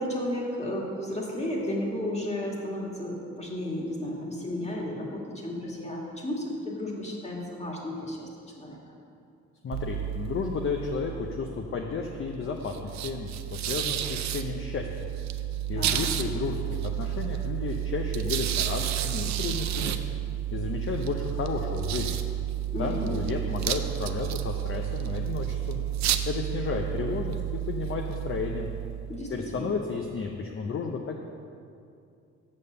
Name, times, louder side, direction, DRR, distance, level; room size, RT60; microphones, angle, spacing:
voice 1, 0.0-8.3 8.6-8.8 15.8-16.1 22.7-23.2 29.1-29.7, left 1 dB, 20° left, -2 dB, 2.0 m, -33 dB
voice 2, 9.6-14.9 15.7-19.9 20.5-22.2 22.8-25.8 26.2-28.7 29.3-31.2, left 5 dB, 45° left, 2 dB, 0.7 m, -32 dB
sound 1, 9.7-29.6, right 12 dB, 65° right, 0.6 m, -31 dB
7.3 x 6.5 x 6.7 m, 2.5 s
cardioid pair, 90°, 30 cm